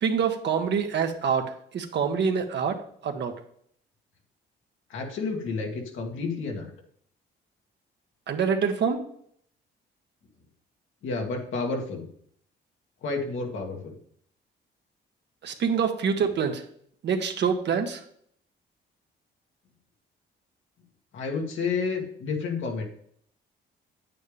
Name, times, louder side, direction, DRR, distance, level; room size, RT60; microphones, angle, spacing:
voice 1, 0.0-3.3 8.3-9.0 15.4-16.6 17.0-18.0, right 6 dB, 60° right, 5 dB, 1.4 m, -26 dB
voice 2, 4.9-6.7 11.0-12.1 13.0-14.0 21.1-22.8, left 4 dB, 75° left, 1 dB, 2.2 m, -30 dB
9.3 x 8.7 x 3.5 m, 0.65 s
cardioid pair, 90°, 20 cm